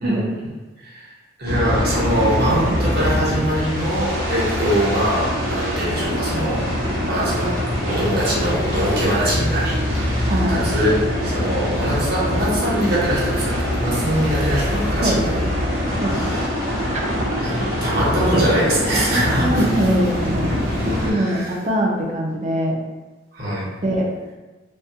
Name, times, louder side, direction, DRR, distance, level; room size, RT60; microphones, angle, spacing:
voice 1, 0.8-1.1 1.4-7.6 7.9-15.4 16.1-16.4 17.4-17.5 17.8-19.6 20.9-21.5 23.3-23.7, equal, 50° right, -7 dB, 0.9 m, -23 dB
sound 1, 1.5-21.1, equal, 85° right, 0.8 m, -23 dB
voice 2, 10.3-10.6 15.0-15.5 16.0-16.4 16.9-17.0 19.1-20.4 20.9-22.8 23.8-24.1, equal, 35° right, -1 dB, 0.4 m, -22 dB
2.8 x 2.2 x 2.8 m, 1.2 s
head